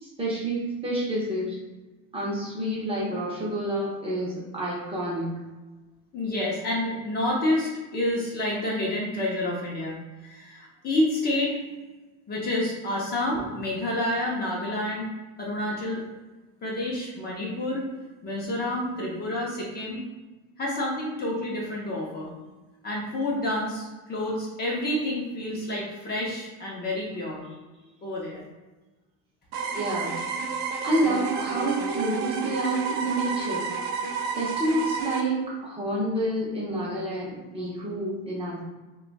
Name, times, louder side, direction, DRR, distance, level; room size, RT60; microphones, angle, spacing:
voice 1, 0.0-1.6 2.1-5.3 29.7-30.2 30.8-33.6 34.3-38.6, right 1 dB, 15° right, -6 dB, 0.7 m, -28 dB
voice 2, 6.1-10.0 10.2-11.6 12.3-15.1 15.4-16.0 16.6-17.9 18.2-20.0 20.6-22.3 22.8-27.5 28.0-28.4, left 1 dB, 30° left, -4 dB, 0.6 m, -29 dB
sound 1, 29.5-35.2, right 5 dB, 80° right, 0.6 m, -31 dB
2.6 x 2.3 x 3.9 m, 1.2 s
cardioid pair, 160°, 34 cm